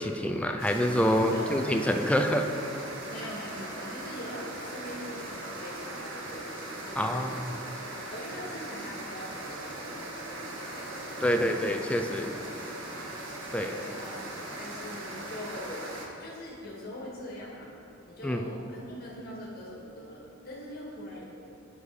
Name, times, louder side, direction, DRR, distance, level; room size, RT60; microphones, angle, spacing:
voice 1, 0.0-2.5 7.0-7.6 11.2-12.3 13.5-13.7 18.2-18.4, equal, 5° left, 4 dB, 0.4 m, -26 dB
sound 1, 0.6-16.1, right 1 dB, 75° right, 1.3 m, -39 dB
voice 2, 1.3-1.6 3.1-6.5 6.8-7.4 8.1-11.7 12.1-13.0 13.6-14.2 14.6-17.8 18.0-21.3, equal, 50° left, -4 dB, 1.9 m, -43 dB
7.7 x 6.3 x 5.0 m, 2.8 s
head